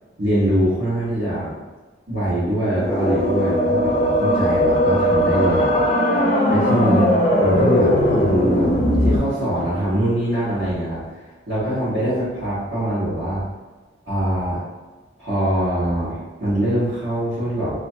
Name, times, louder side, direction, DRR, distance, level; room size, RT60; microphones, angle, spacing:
voice 1, 0.2-1.5 2.1-5.9 6.5-8.7 9.0-11.0 11.5-13.5 14.0-14.6 15.2-17.7, right 1 dB, 60° right, -17 dB, 1.5 m, -23 dB
sound 1, 2.7-9.2, equal, 35° left, 0.4 m, -18 dB
2.9 x 2.3 x 2.7 m, 1.3 s
head